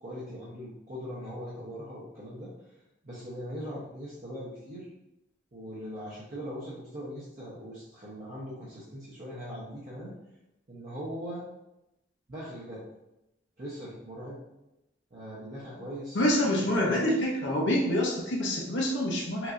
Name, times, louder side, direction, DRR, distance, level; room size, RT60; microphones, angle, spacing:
voice 1, 0.0-2.5 3.0-4.9 5.5-10.1 10.7-11.4 12.3-12.8 13.6-14.4 15.1-16.2 16.5-17.2, equal, 45° right, -8 dB, 0.9 m, -40 dB
voice 2, 16.1-19.5, left 1 dB, 70° left, -2 dB, 0.8 m, -26 dB
6.0 x 2.7 x 2.5 m, 0.91 s
head